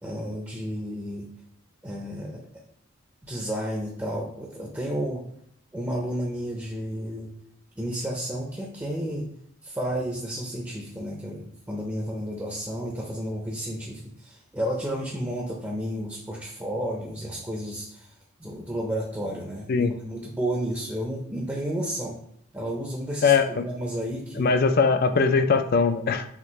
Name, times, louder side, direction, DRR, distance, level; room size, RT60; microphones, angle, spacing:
voice 1, 0.0-1.3 1.8-2.4 3.2-5.2 5.7-7.3 7.8-9.3 9.6-18.1 18.4-22.1 22.5-23.3 23.6-24.5, equal, 10° right, -1 dB, 0.6 m, -32 dB
voice 2, 23.2-23.6 24.4-26.3, left 5 dB, 45° left, 9 dB, 0.4 m, -21 dB
5.9 x 2.5 x 3.1 m, 0.71 s
head